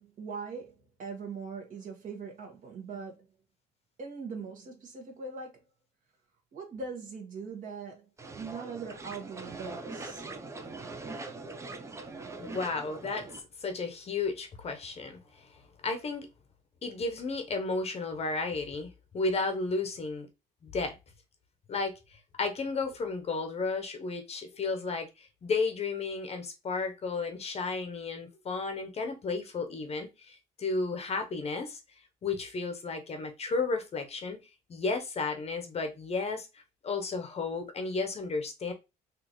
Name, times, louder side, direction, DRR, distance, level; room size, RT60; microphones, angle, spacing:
voice 1, 0.0-3.3 4.0-5.7 6.5-10.2, right 5 dB, 50° right, 1.4 m, -41 dB
sound 1, 8.2-13.4, right 3 dB, 15° right, 0.6 m, -42 dB
voice 2, 12.4-13.3 13.6-15.5 15.8-16.3 16.8-20.3 20.6-20.9 21.7-21.9 22.4-31.8 32.2-34.4 34.7-38.7, left 3 dB, 35° left, 0.8 m, -33 dB
4.2 x 2.7 x 3.0 m
cardioid pair, 110°, 17 cm